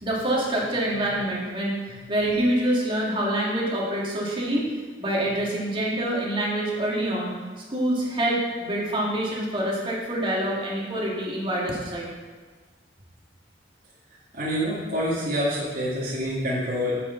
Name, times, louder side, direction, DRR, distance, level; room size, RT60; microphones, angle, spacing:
voice 1, 0.0-4.7 5.0-7.3 7.7-12.0, right 1 dB, 30° right, -4 dB, 2.3 m, -26 dB
voice 2, 14.3-16.9, equal, 55° right, -9 dB, 2.2 m, -27 dB
9.6 x 8.4 x 4.0 m, 1.4 s
head